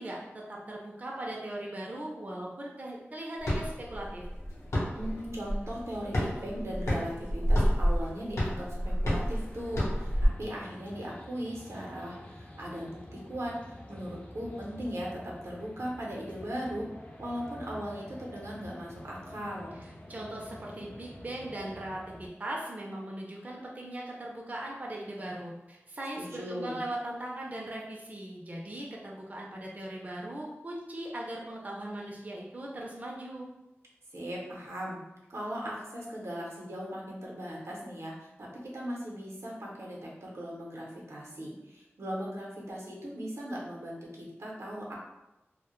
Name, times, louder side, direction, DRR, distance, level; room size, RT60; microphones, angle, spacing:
voice 1, 0.0-4.3 19.8-33.5, right 1 dB, 35° right, -2 dB, 0.4 m, -39 dB
sound 1, 3.4-10.3, equal, 75° left, 0.7 m, -30 dB
voice 2, 4.9-16.9 17.2-19.7 26.2-26.9 34.1-35.0 35.3-38.5 38.7-45.0, equal, 80° right, -3 dB, 0.6 m, -38 dB
sound 2, 9.3-22.3, left 1 dB, 30° left, 0.4 m, -48 dB
2.1 x 2.0 x 2.9 m, 0.97 s
wide cardioid pair, 60°, 5 cm